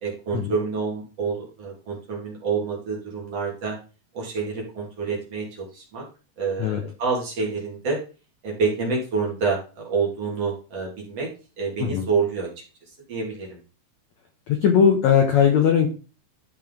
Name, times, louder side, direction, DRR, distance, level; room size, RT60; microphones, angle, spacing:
voice 1, 0.0-3.7 4.1-6.0 6.4-8.0 8.4-11.3 11.6-12.5 13.1-13.6, right 4 dB, 45° right, -3 dB, 2.9 m, -27 dB
voice 2, 14.5-15.9, left 7 dB, 75° left, 3 dB, 1.6 m, -19 dB
12.5 x 5.2 x 3.7 m, 0.34 s
omnidirectional pair, 4.6 m